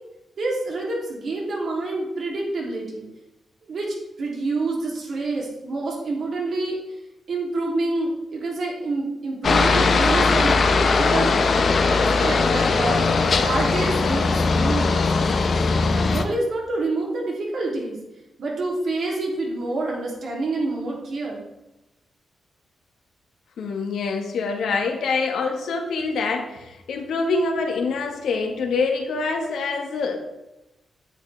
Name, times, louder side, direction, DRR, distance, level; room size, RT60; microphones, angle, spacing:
voice 1, 0.4-3.0 3.6-6.8 7.3-11.3 12.2-15.3 15.8-18.0 18.4-21.4, right 2 dB, 65° right, -2 dB, 3.1 m, -27 dB
Aircraft, 9.4-16.2, left 4 dB, 55° left, 0.9 m, -19 dB
voice 2, 23.6-30.2, left 4 dB, 85° left, 2 dB, 1.6 m, -25 dB
9.4 x 8.9 x 3.5 m, 0.98 s
cardioid pair, 90°, 0 cm